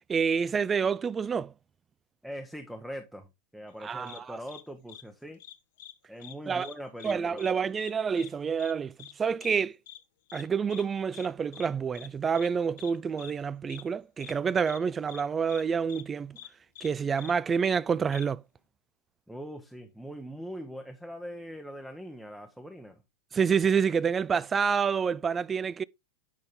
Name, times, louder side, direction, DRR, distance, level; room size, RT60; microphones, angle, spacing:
voice 1, 0.1-1.5 3.8-4.4 6.5-6.7 7.0-8.9 9.2-9.7 10.3-16.4 16.8-18.4 23.3-25.8, right 6 dB, 20° right, 0.3 m, -28 dB
voice 2, 2.2-5.4 6.1-7.4 19.3-23.0, equal, ahead, 0.9 m, -42 dB
sound 1, 4.1-4.2 4.5-4.6 4.9-5.0 5.4-5.9 6.2-6.3 6.6-7.1 7.4-7.5 7.8-7.9 8.2-8.3 8.6-8.7 9.0-9.1 9.4-9.5 9.9-10.0 10.3-10.4 10.7-10.8 11.1-11.3 11.5-11.7 11.9-12.1 12.3-12.5 12.8-12.9 13.2-13.3 13.7-13.8 14.2-14.3 14.7-14.8 15.1-15.2 15.5-15.6 15.9-16.0 16.4-16.5 16.8-16.9 17.2-17.3 17.6-17.8 18.1-18.2, left 12 dB, 55° left, 0.8 m, -46 dB
8.9 x 5.3 x 3.6 m
figure-of-eight pair, 90°, 0 cm